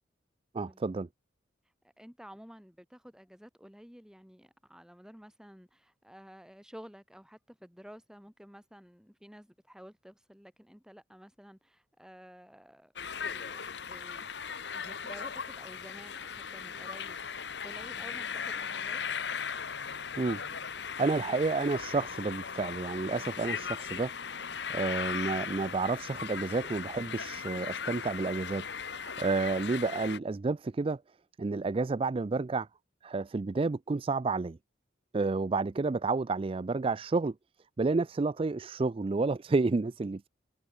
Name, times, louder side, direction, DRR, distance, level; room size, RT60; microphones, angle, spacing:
voice 1, 0.5-1.1 20.2-20.4 21.0-24.1 24.7-31.0 31.4-32.7 33.0-34.6 35.1-37.3 37.8-40.3, right 3 dB, 30° right, 0.4 m, -30 dB
voice 2, 2.0-12.9 13.2-14.2 14.7-17.2 17.6-19.0, equal, 5° right, 4.0 m, -52 dB
sound 1, 13.0-30.2, left 6 dB, 65° left, 1.2 m, -38 dB
head